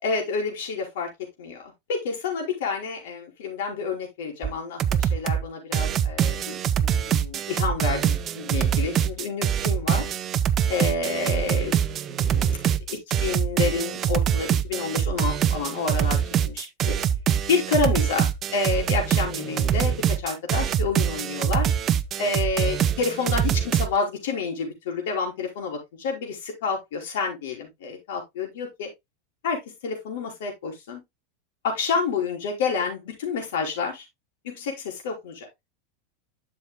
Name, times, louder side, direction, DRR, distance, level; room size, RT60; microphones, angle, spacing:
voice 1, 0.0-1.1 1.4-10.0 10.7-11.7 12.1-12.6 12.9-16.2 16.4-17.0 17.5-21.7 22.2-28.9 29.4-31.0 31.6-34.0 34.4-35.3, left 5 dB, 70° left, 5.0 m, -29 dB
sound 1, 4.4-4.5 4.8-5.4 5.7-23.9, right 9 dB, 25° right, 0.5 m, -24 dB
12.0 x 7.0 x 2.2 m
supercardioid pair, 165°, 0 cm